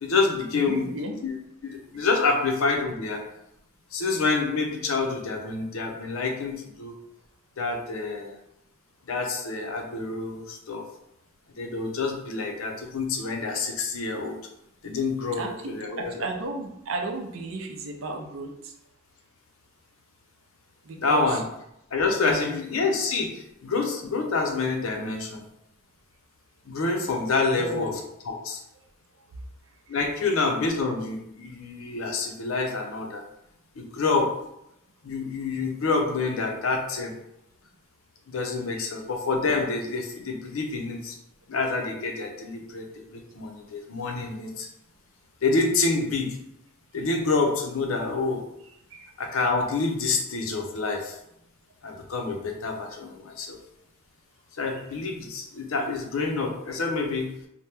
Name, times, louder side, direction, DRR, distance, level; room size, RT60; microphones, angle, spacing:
voice 1, 0.0-0.9 1.2-1.3 1.6-3.2 3.9-6.9 7.6-8.4 9.1-10.8 11.6-14.4 14.8-16.2 21.0-21.4 21.9-25.4 26.7-27.9 28.2-28.6 29.9-33.2 33.8-34.3 35.0-37.1 38.3-41.2 41.5-42.9 43.1-44.7 45.4-46.4 46.9-48.4 49.2-51.2 51.8-53.6 54.6-57.3, left 3 dB, 80° left, 3 dB, 0.5 m, -27 dB
voice 2, 0.5-1.1 15.4-18.5 20.9-21.4 22.3-22.6 27.6-27.9 38.8-38.9 48.9-49.1, right 2 dB, 70° right, 3 dB, 0.5 m, -34 dB
2.8 x 2.1 x 3.3 m, 0.80 s
head